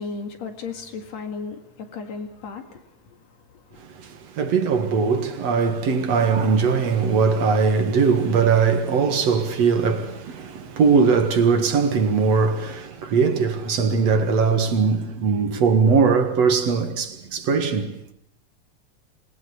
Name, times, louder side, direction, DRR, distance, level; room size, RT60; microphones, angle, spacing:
voice 1, 0.0-3.8, left 4 dB, 65° left, 3.2 m, -35 dB
voice 2, 3.8-18.0, right 5 dB, 60° right, 2.8 m, -20 dB
26.5 x 20.0 x 8.2 m
omnidirectional pair, 3.3 m